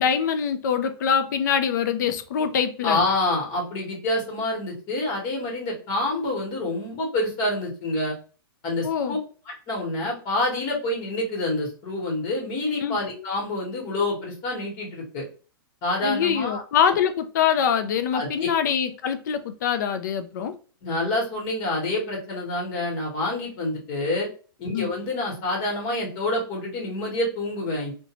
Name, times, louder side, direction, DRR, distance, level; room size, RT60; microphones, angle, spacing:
voice 1, 0.0-3.0 8.8-9.2 12.8-13.0 16.0-20.6 24.7-24.9, left 7 dB, 50° left, 0.4 m, -24 dB
voice 2, 2.8-8.1 8.6-9.2 9.5-15.2 15.8-16.9 18.1-18.5 20.8-24.3 24.6-27.9, left 2 dB, 30° left, 1.2 m, -27 dB
2.6 x 2.2 x 2.8 m
hypercardioid pair, 160°, 13 cm